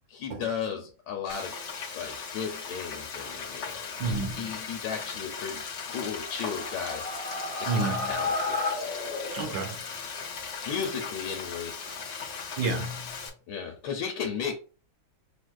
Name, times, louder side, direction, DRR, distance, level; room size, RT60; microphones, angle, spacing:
voice 1, 0.1-1.5 1.9-8.6 10.7-11.8 13.5-14.5, left 7 dB, 75° left, 1.5 m, -35 dB
Frying (food), 1.3-13.3, left 5 dB, 50° left, 0.8 m, -38 dB
voice 2, 4.0-4.5 7.7-8.2 9.3-9.8 12.6-13.3, right 3 dB, 65° right, 1.4 m, -30 dB
sound 1, 6.1-9.9, left 3 dB, 30° left, 1.2 m, -33 dB
6.3 x 2.5 x 2.3 m
omnidirectional pair, 2.3 m